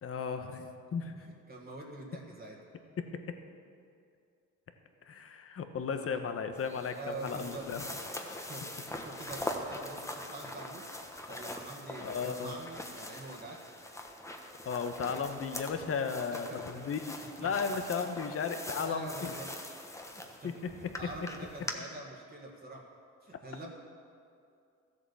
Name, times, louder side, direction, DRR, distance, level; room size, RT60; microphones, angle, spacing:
voice 1, 0.0-1.3 3.0-3.4 5.1-7.8 12.0-12.6 14.6-19.3 20.4-21.1, left 5 dB, 50° left, 7 dB, 1.2 m, -35 dB
voice 2, 1.2-2.6 5.9-6.2 7.0-7.7 8.2-10.9 11.2-13.6 16.3-16.7 17.4-17.6 18.7-19.5 20.1-22.9 23.2-23.7, right 2 dB, 30° right, -2 dB, 1.9 m, -46 dB
sound 1, 6.6-21.7, left 1 dB, 10° left, 1.3 m, -43 dB
14.0 x 8.2 x 7.0 m, 2.4 s
cardioid pair, 90°, 30 cm